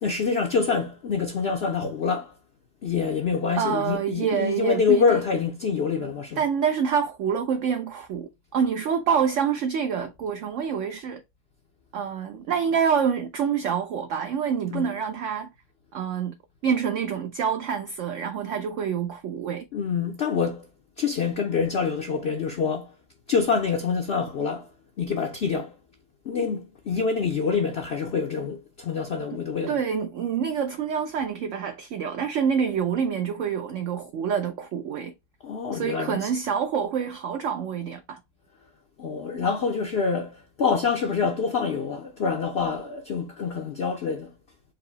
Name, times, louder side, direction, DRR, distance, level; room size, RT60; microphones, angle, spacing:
voice 1, 0.0-2.3 2.8-6.4 14.7-14.9 19.7-20.6 21.0-22.9 23.3-24.7 25.0-25.7 26.3-29.8 35.4-36.3 39.0-44.3, left 5 dB, 55° left, 0.7 m, -26 dB
voice 2, 3.6-5.2 6.4-11.2 11.9-15.5 15.9-16.3 16.6-19.7 29.7-35.1 35.7-38.2, right 7 dB, 65° right, 0.8 m, -27 dB
4.8 x 2.6 x 3.9 m
omnidirectional pair, 1.7 m